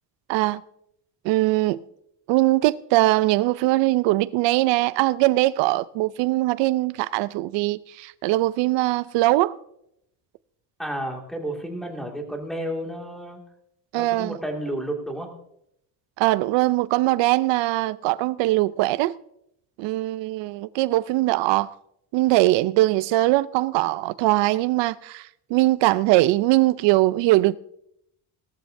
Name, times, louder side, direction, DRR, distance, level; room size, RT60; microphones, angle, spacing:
voice 1, 0.3-0.6 1.2-1.8 2.3-9.5 13.9-14.4 16.2-19.1 19.8-21.7 22.1-27.6, right 18 dB, 80° right, 0.5 m, -21 dB
voice 2, 10.8-13.4 13.9-15.3, right 1 dB, ahead, 2.1 m, -31 dB
18.0 x 13.0 x 2.6 m
cardioid pair, 150°, 43 cm